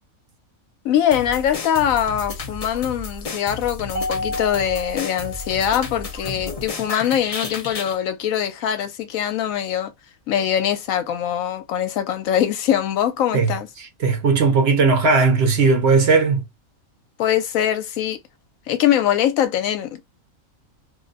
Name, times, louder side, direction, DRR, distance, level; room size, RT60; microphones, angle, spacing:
voice 1, 0.8-9.9 10.3-13.7 17.2-18.2 18.7-20.0, left 10 dB, 80° left, 1.0 m, -22 dB
sound 1, 1.1-8.0, left 4 dB, 60° left, 0.3 m, -33 dB
Mallet percussion, 3.9-6.4, left 2 dB, 15° right, 0.4 m, -31 dB
voice 2, 13.3-16.4, right 4 dB, 60° right, 0.8 m, -18 dB
2.5 x 2.2 x 3.8 m
omnidirectional pair, 1.4 m